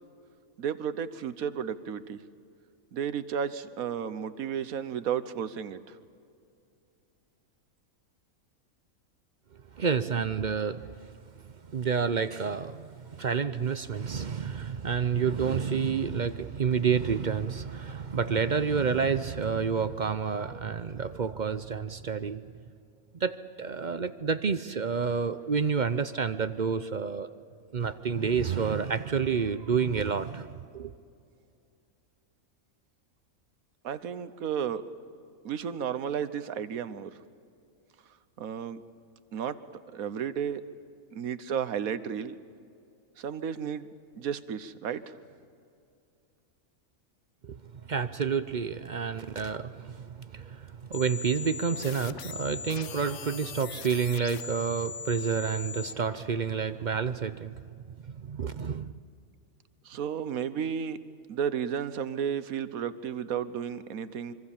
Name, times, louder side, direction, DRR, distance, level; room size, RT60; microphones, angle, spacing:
voice 1, 0.6-2.2 2.9-6.0 33.8-34.8 35.4-37.2 38.4-38.8 39.3-39.6 39.9-40.6 41.1-42.3 43.2-43.9 44.1-45.1 59.8-61.0 61.3-64.3, right 8 dB, 85° right, 1.4 m, -33 dB
voice 2, 9.7-11.0 11.7-22.4 23.1-27.3 27.7-30.9 47.4-47.6 47.9-57.6 58.1-58.9, right 6 dB, 45° right, 0.6 m, -29 dB
sound 1, 50.9-55.9, left 7 dB, 60° left, 1.1 m, -40 dB
25.5 x 24.5 x 7.2 m
omnidirectional pair, 1.5 m